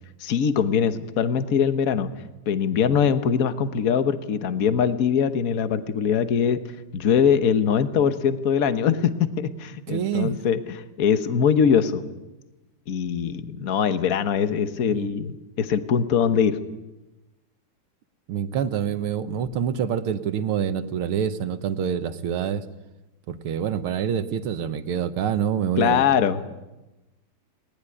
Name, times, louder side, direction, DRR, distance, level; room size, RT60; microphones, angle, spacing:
voice 1, 0.2-2.1 2.5-6.6 6.9-12.1 12.9-16.6 25.8-26.4, left 7 dB, 45° left, 10 dB, 1.5 m, -22 dB
voice 2, 9.9-10.4 14.8-15.1 18.3-22.7 23.3-26.1, right 8 dB, 85° right, 11 dB, 2.0 m, -26 dB
19.5 x 19.5 x 9.9 m, 1.0 s
omnidirectional pair, 2.3 m